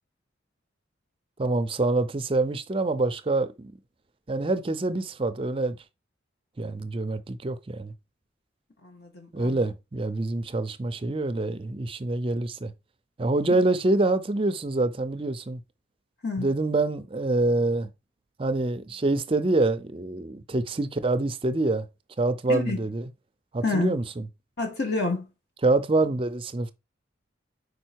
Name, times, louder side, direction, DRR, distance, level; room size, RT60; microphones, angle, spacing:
voice 1, 1.4-3.7 4.3-5.8 6.6-7.9 9.3-12.7 13.2-15.6 16.4-17.9 18.4-21.9 22.2-23.1 23.5-24.2 25.6-26.7, right 2 dB, 30° right, 0.5 m, -26 dB
voice 2, 8.8-9.7 16.2-16.6 22.5-22.8 23.6-23.9 24.6-25.3, left 3 dB, 55° left, 2.1 m, -29 dB
5.0 x 4.4 x 4.5 m
head